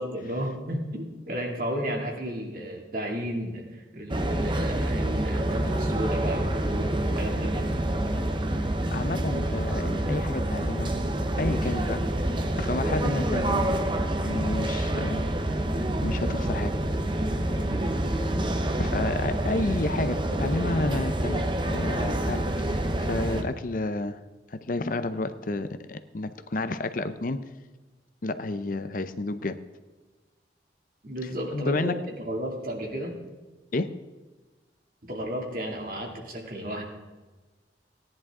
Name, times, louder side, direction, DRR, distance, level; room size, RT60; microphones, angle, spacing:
voice 1, 0.0-7.7 31.0-33.1 35.1-36.8, equal, 50° right, 0 dB, 2.5 m, -33 dB
sound 1, 4.1-23.4, right 1 dB, 25° right, 0.8 m, -27 dB
voice 2, 8.9-10.9 11.4-12.0 12.6-13.8 14.2-15.3 16.0-16.7 18.8-22.8 23.1-24.2 24.5-27.5 28.2-29.6 31.5-32.0 33.7-33.9, left 2 dB, 50° left, 11 dB, 0.6 m, -30 dB
17.5 x 10.5 x 3.7 m, 1.2 s
head